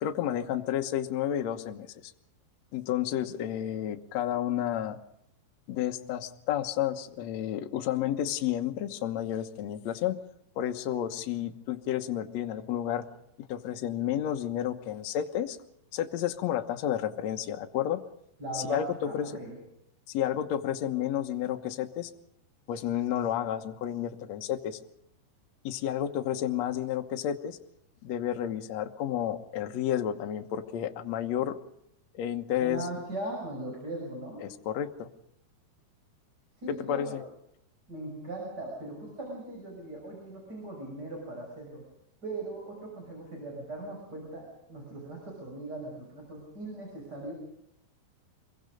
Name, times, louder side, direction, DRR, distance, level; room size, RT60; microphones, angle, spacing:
voice 1, 0.0-2.1 2.7-5.0 5.7-10.2 10.5-13.1 13.4-15.6 15.9-18.0 18.5-19.4 20.1-22.1 22.7-24.8 25.6-27.6 28.0-31.6 32.1-32.9 34.4-35.1 36.7-37.2, left 11 dB, 85° left, 6 dB, 1.5 m, -31 dB
voice 2, 18.4-19.5 32.6-34.4 36.6-37.2 37.9-41.8 42.2-47.3, right 2 dB, 20° right, -1 dB, 6.4 m, -39 dB
26.5 x 23.0 x 5.2 m, 0.79 s
omnidirectional pair, 5.0 m